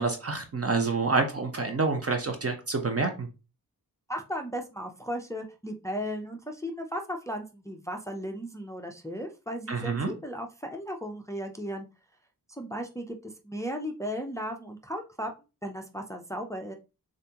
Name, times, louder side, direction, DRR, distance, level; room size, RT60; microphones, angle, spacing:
voice 1, 0.0-3.3 9.7-10.1, right 4 dB, 40° right, 5 dB, 0.7 m, -28 dB
voice 2, 4.1-11.9 12.5-15.3 15.6-16.7, equal, 10° left, 3 dB, 0.5 m, -36 dB
7.0 x 2.6 x 2.9 m, 0.30 s
wide cardioid pair, 130°, 37 cm